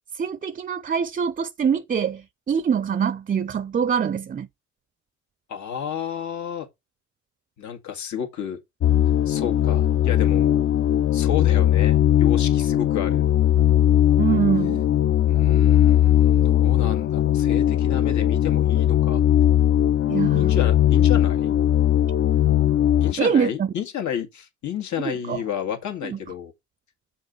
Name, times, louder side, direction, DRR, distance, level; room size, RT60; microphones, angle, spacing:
voice 1, 0.1-4.5 14.2-14.8 20.1-20.5 23.2-23.7 25.3-25.4 26.0-26.2, right 7 dB, 30° right, 0.4 m, -24 dB
voice 2, 5.5-6.7 7.6-8.6 9.3-10.7 11.1-13.2 15.3-19.2 20.4-21.6 23.0-26.5, left 9 dB, 70° left, 2.0 m, -31 dB
sound 1, 8.8-23.1, left 11 dB, 45° left, 0.5 m, -19 dB
6.5 x 4.6 x 5.3 m
cardioid pair, 90°, 30 cm